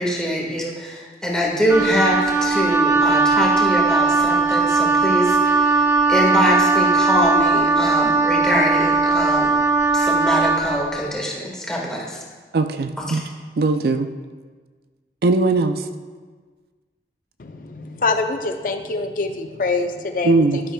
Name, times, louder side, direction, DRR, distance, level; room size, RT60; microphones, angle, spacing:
voice 1, 0.0-9.6 9.9-12.2 13.0-13.2, equal, 5° left, -3 dB, 1.5 m, -23 dB
Wind instrument woodwind instrument, 1.7-10.9, right 3 dB, 15° right, 0.7 m, -18 dB
voice 2, 12.5-13.2 13.6-14.1 15.2-15.8 20.2-20.6, right 3 dB, 60° right, 8 dB, 0.4 m, -19 dB
voice 3, 17.4-20.6, left 3 dB, 50° left, 5 dB, 0.5 m, -25 dB
12.0 x 9.9 x 2.3 m, 1.5 s
head